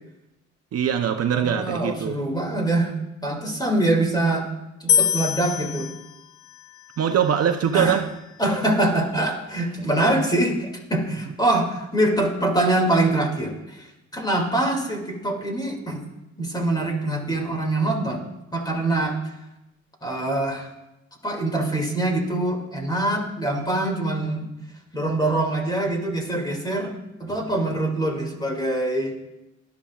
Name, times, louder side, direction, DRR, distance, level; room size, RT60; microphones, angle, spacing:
voice 1, 0.7-2.2 7.0-8.1, right 8 dB, 55° right, 7 dB, 0.7 m, -22 dB
voice 2, 1.3-2.9 3.2-4.5 5.0-5.9 7.7-8.0 8.4-13.9 14.1-16.0 16.4-18.2 18.5-19.2 20.0-20.7 21.2-24.5 24.9-29.1, right 1 dB, 15° left, 2 dB, 2.4 m, -24 dB
sound 1, 4.9-8.1, left 8 dB, 85° left, 0.8 m, -26 dB
18.5 x 11.5 x 2.4 m, 0.95 s
cardioid pair, 90°, 30 cm